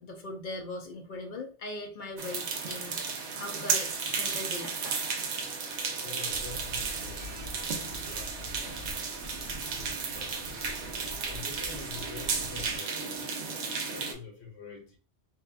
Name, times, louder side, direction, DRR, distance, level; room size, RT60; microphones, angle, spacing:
voice 1, 0.0-3.1 3.3-4.8, left 2 dB, 55° left, 3 dB, 0.7 m, -40 dB
sound 1, 2.2-14.1, right 5 dB, 90° right, 0.9 m, -34 dB
sound 2, 3.7-8.2, left 1 dB, 25° left, 1.3 m, -54 dB
voice 2, 6.0-8.9 9.5-10.4 11.2-13.3 13.9-15.0, left 5 dB, 75° left, 1 dB, 1.2 m, -47 dB
sound 3, 6.3-12.8, left 1 dB, 35° right, 0.9 m, -46 dB
2.9 x 2.3 x 2.3 m, 0.36 s
omnidirectional pair, 1.1 m